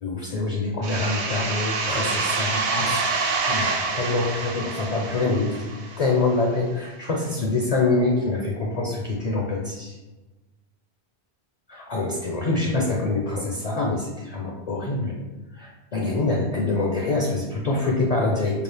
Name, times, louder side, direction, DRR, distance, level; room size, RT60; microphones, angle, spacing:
voice 1, 0.0-5.7 6.0-9.9 11.7-15.1 15.5-18.6, left 3 dB, 50° left, -1 dB, 0.5 m, -25 dB
sound 1, 0.8-6.3, right 4 dB, 90° right, 0.9 m, -27 dB
4.8 x 2.4 x 3.2 m, 1.2 s
omnidirectional pair, 1.1 m